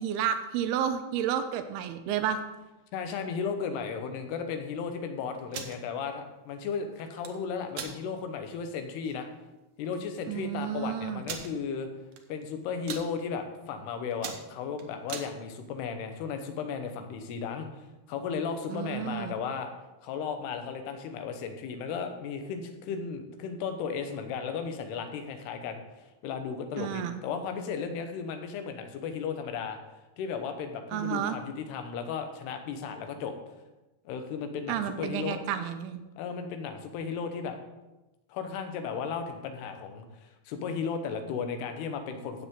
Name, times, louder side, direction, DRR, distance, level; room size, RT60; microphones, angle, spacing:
voice 1, 0.0-2.4 10.3-11.2 18.7-19.4 26.8-27.2 30.9-31.4 34.7-36.0, right 9 dB, 90° right, 9 dB, 2.6 m, -31 dB
voice 2, 2.9-9.3 9.8-11.9 12.3-19.7 20.0-29.8 30.2-33.4 34.1-35.4 36.2-37.6 38.3-42.5, left 6 dB, 90° left, 7 dB, 3.1 m, -35 dB
sound 1, 5.4-5.8 7.0-7.3 7.7-8.0 8.5-8.6 8.9-9.1 9.9-10.0 10.2-10.3 11.2-11.5 12.1-12.4 12.7-13.1 13.6-13.8 14.1-15.3, right 7 dB, 75° right, 1.7 m, -38 dB
14.0 x 8.2 x 3.7 m, 1.0 s
omnidirectional pair, 4.6 m